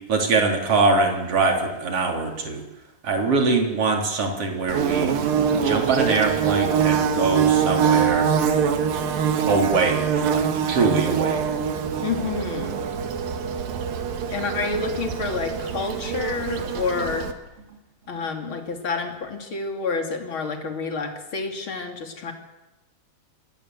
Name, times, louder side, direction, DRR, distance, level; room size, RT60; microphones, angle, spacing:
voice 1, 0.1-2.6 3.0-5.2 5.5-8.3 9.5-10.1 10.3-11.4, right 3 dB, 40° right, 2 dB, 4.5 m, -23 dB
Bird / Buzz, 4.7-17.3, right 7 dB, 80° right, 3.5 m, -24 dB
voice 2, 12.0-12.8 14.3-17.3 18.1-22.3, left 4 dB, 40° left, 4 dB, 3.2 m, -29 dB
26.5 x 21.0 x 7.9 m, 1.0 s
omnidirectional pair, 4.0 m